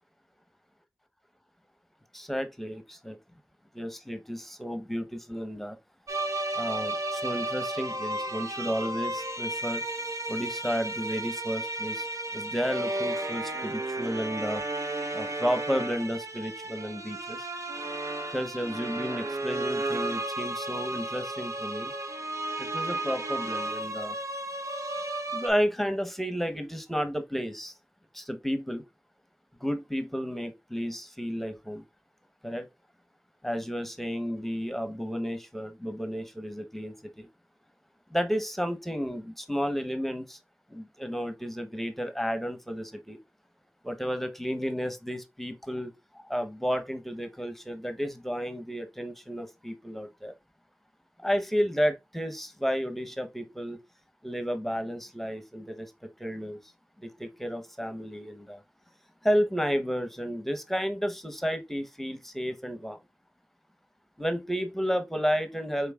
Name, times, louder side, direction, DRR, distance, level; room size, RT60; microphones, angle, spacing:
voice 1, 2.1-3.2 3.7-5.8 6.6-9.8 10.3-12.1 12.3-14.6 15.1-17.5 18.3-21.9 22.6-24.2 25.3-27.7 28.1-28.8 29.6-31.8 32.4-32.7 33.4-37.3 38.1-40.4 40.7-43.2 43.8-50.3 51.2-53.8 54.2-55.9 56.2-56.6 57.0-58.6 59.2-63.0 64.2-65.9, equal, 5° left, 0.9 m, -32 dB
sound 1, 6.1-25.5, right 2 dB, 75° right, 0.7 m, -33 dB
5.3 x 3.8 x 2.3 m
cardioid pair, 50°, 5 cm